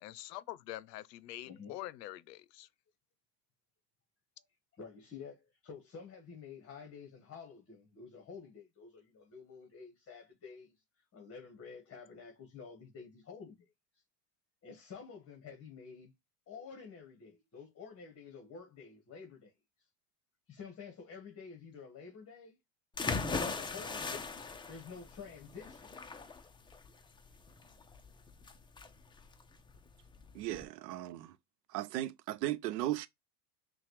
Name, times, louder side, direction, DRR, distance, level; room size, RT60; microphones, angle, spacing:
voice 1, 0.0-2.7, left 15 dB, 80° left, 0.7 m, -45 dB
voice 2, 4.7-10.8 11.1-13.7 14.6-16.1 16.5-19.5 20.5-22.6 23.4-24.4 24.7-26.0, left 5 dB, 30° left, 1.3 m, -50 dB
sound 1, 23.0-30.6, left 4 dB, 10° left, 0.5 m, -39 dB
voice 3, 30.3-31.4 31.7-33.1, right 14 dB, 80° right, 0.7 m, -36 dB
5.7 x 2.4 x 3.1 m
supercardioid pair, 105°, 48 cm